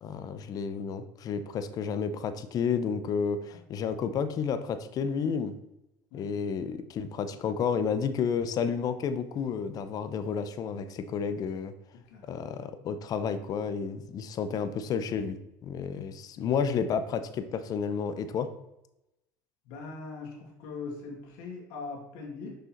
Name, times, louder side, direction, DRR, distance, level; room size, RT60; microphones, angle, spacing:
voice 1, 0.0-5.5 6.1-11.7 12.2-15.4 15.6-18.5, left 6 dB, 45° left, 11 dB, 0.8 m, -31 dB
voice 2, 19.7-22.6, left 4 dB, 70° left, -1 dB, 2.7 m, -41 dB
6.5 x 5.4 x 4.6 m, 0.89 s
supercardioid pair, 95°, 9 cm